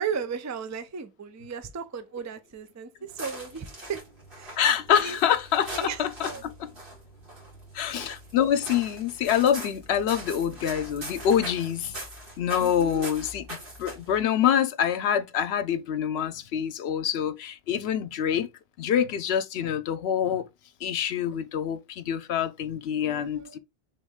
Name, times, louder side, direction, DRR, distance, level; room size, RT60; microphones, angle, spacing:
voice 1, 0.0-4.1 4.3-4.6 4.9-5.2 5.7-6.4 7.9-8.2 12.6-13.1 23.0-23.6, right 6 dB, 30° right, 0.3 m, -35 dB
sound 1, 3.1-14.2, right 1 dB, 60° right, 2.4 m, -42 dB
voice 2, 4.6-6.7 7.7-11.9 12.4-18.5 18.8-20.5 20.8-23.6, left 9 dB, 85° left, 0.9 m, -26 dB
4.3 x 3.1 x 3.6 m
omnidirectional pair, 1.1 m